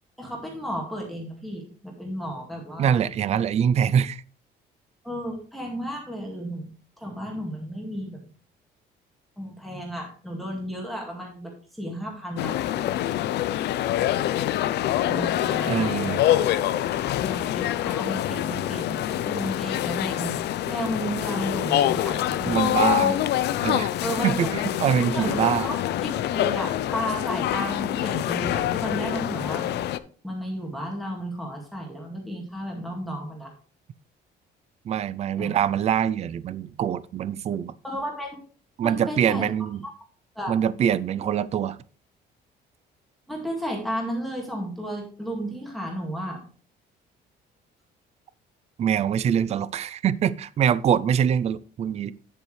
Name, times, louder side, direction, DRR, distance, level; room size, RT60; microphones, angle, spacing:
voice 1, 0.2-3.0 5.0-8.2 9.4-12.6 15.0-16.4 17.1-20.4 20.7-22.6 23.0-23.1 24.0-24.5 25.1-25.3 25.6-29.8 30.2-33.5 35.4-35.6 37.8-38.4 38.8-39.7 40.4-40.5 43.3-46.4, equal, ahead, -1 dB, 2.1 m, -33 dB
voice 2, 2.8-4.2 15.7-16.2 22.5-23.1 23.6-23.9 24.2-25.7 34.8-37.8 38.8-39.8 40.5-41.8 48.8-52.1, right 9 dB, 35° right, 18 dB, 0.4 m, -24 dB
sound 1, 12.4-30.0, left 12 dB, 70° left, 0.6 m, -25 dB
9.8 x 7.9 x 3.2 m, 0.42 s
cardioid pair, 155°, 18 cm